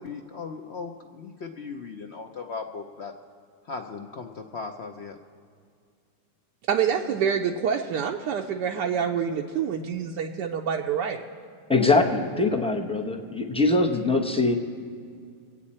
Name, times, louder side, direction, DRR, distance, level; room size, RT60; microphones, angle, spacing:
voice 1, 0.0-3.1 3.6-5.2, left 4 dB, 60° left, 3 dB, 0.7 m, -37 dB
voice 2, 6.7-11.3, right 7 dB, 80° right, 2 dB, 1.3 m, -27 dB
voice 3, 11.7-14.5, left 3 dB, 10° left, 0 dB, 0.3 m, -22 dB
24.5 x 8.8 x 4.2 m, 2.2 s
omnidirectional pair, 1.9 m